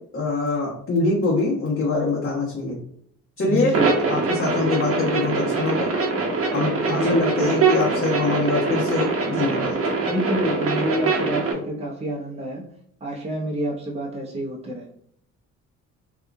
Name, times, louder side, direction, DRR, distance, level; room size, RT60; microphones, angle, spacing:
voice 1, 0.1-2.7 3.4-3.8 4.1-5.9 6.5-9.8, left 3 dB, 45° left, -7 dB, 1.2 m, -24 dB
voice 2, 3.4-3.9 6.9-7.6 10.0-12.7 13.0-14.9, equal, 20° right, -1 dB, 0.8 m, -27 dB
sound 1, 3.7-11.5, right 3 dB, 50° right, 1.0 m, -23 dB
2.8 x 2.4 x 3.4 m, 0.66 s
cardioid pair, 90°, 30 cm